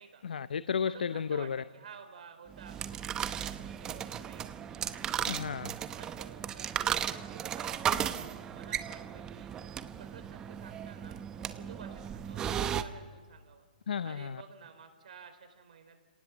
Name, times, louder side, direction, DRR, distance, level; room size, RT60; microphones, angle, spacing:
voice 1, 0.2-1.6 5.3-5.7 13.9-14.4, left 7 dB, 80° left, 16 dB, 0.6 m, -33 dB
voice 2, 0.8-4.6 5.9-9.5 10.0-13.6 14.0-16.0, right 6 dB, 60° right, 7 dB, 4.0 m, -52 dB
sound 1, 2.5-12.8, right 9 dB, 15° right, 0.7 m, -36 dB
30.0 x 18.5 x 7.2 m, 1.5 s
hypercardioid pair, 160°, 5 cm